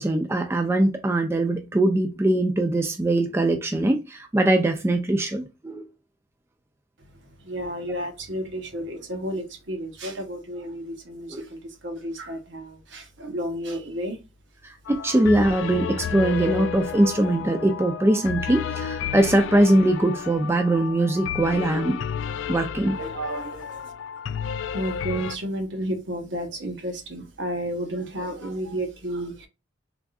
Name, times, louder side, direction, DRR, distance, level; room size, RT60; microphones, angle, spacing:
voice 1, 0.0-5.8 11.3-11.4 14.6-22.0 22.5-23.0, right 1 dB, 15° right, 0.4 m, -22 dB
voice 2, 7.4-14.2 23.0-23.9 24.7-29.5, right 1 dB, 70° right, 1.0 m, -32 dB
sound 1, 14.8-25.4, left 7 dB, 80° left, 0.3 m, -32 dB
3.5 x 2.4 x 2.3 m
head